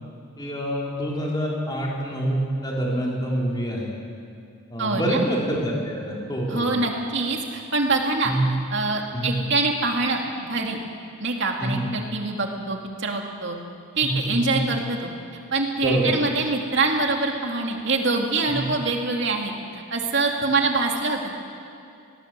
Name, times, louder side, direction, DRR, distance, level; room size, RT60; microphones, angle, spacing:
voice 1, 0.4-4.0 4.7-6.8 8.2-8.4 9.1-9.3 11.6-11.8 14.0-14.6 15.8-16.1 18.5-18.7, right 1 dB, 20° left, -3 dB, 3.9 m, -26 dB
voice 2, 4.8-5.2 6.5-8.3 8.7-10.8 11.2-13.6 14.0-15.1 15.5-21.3, right 3 dB, 55° right, 1 dB, 2.6 m, -24 dB
23.0 x 19.0 x 7.6 m, 2.5 s
head